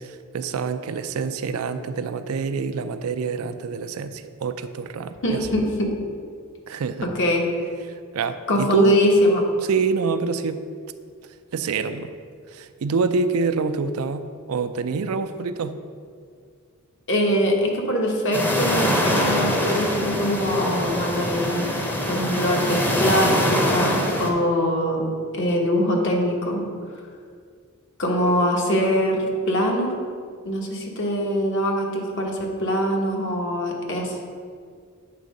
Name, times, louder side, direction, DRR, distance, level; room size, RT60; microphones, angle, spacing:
voice 1, 0.0-5.5 6.7-7.1 8.1-9.0 9.7-10.6 11.5-12.1 12.5-15.8, right 5 dB, 90° right, 10 dB, 0.4 m, -26 dB
voice 2, 5.2-5.9 7.0-7.5 8.5-9.5 17.1-21.7 22.1-25.1 25.3-26.7 28.0-29.9 30.4-34.2, equal, 60° left, 0 dB, 1.2 m, -22 dB
sound 1, 18.3-24.3, equal, 10° left, 0.7 m, -23 dB
8.3 x 3.7 x 5.2 m, 2.2 s
head